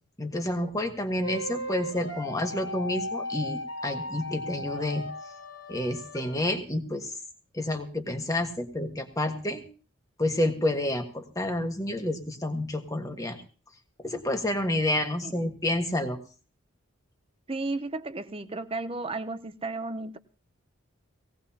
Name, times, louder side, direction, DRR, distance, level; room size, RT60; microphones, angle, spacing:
voice 1, 0.2-5.0 5.7-7.1 7.5-9.6 10.2-13.4 14.0-16.2, left 1 dB, 15° left, 1.5 m, -29 dB
sound 1, 1.2-6.4, left 1 dB, 85° left, 2.5 m, -36 dB
voice 2, 17.5-20.2, right 3 dB, 25° right, 0.6 m, -33 dB
19.5 x 17.0 x 2.8 m
head